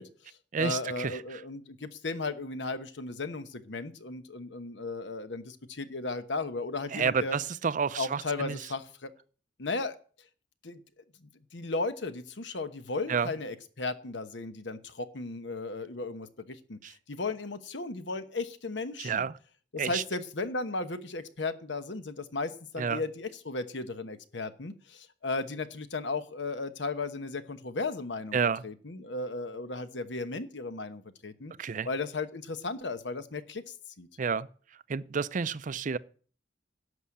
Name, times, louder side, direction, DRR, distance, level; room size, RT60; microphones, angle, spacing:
voice 1, 0.0-7.4 8.0-9.1 9.6-10.0 10.6-10.8 11.2-19.2 19.7-28.4 28.6-31.5 31.9-34.1, left 3 dB, 75° left, 1.1 m, -35 dB
voice 2, 0.5-1.4 6.9-8.6 13.1-13.3 16.8-16.9 19.0-19.3 19.8-20.0 22.8-23.0 28.3-28.6 31.6-31.9 34.2-34.5 34.9-36.0, right 6 dB, 45° right, 0.5 m, -30 dB
11.0 x 6.4 x 8.5 m
head